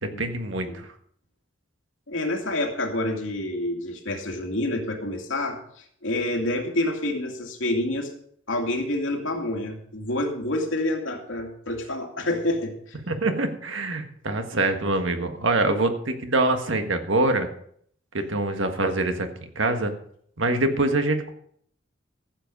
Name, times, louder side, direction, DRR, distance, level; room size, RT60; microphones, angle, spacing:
voice 1, 0.0-0.9 13.1-17.5 18.1-19.9 20.4-21.3, right 2 dB, 85° right, 6 dB, 1.6 m, -25 dB
voice 2, 2.1-8.1 8.5-13.0, left 1 dB, 90° left, 2 dB, 2.4 m, -28 dB
14.5 x 7.9 x 5.4 m, 0.64 s
head